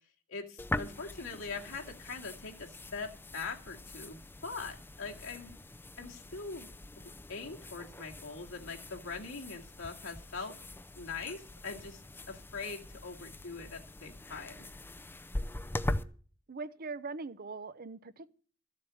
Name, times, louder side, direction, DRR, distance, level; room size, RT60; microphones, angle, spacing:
voice 1, 0.3-5.5 6.0-6.7 7.0-10.6 10.9-12.0 12.3-14.7, left 4 dB, 80° left, 2.4 m, -42 dB
sound 1, 0.6-16.0, left 1 dB, 10° left, 0.6 m, -42 dB
voice 2, 16.5-18.3, right 4 dB, 45° right, 0.7 m, -41 dB
14.0 x 7.6 x 7.6 m
head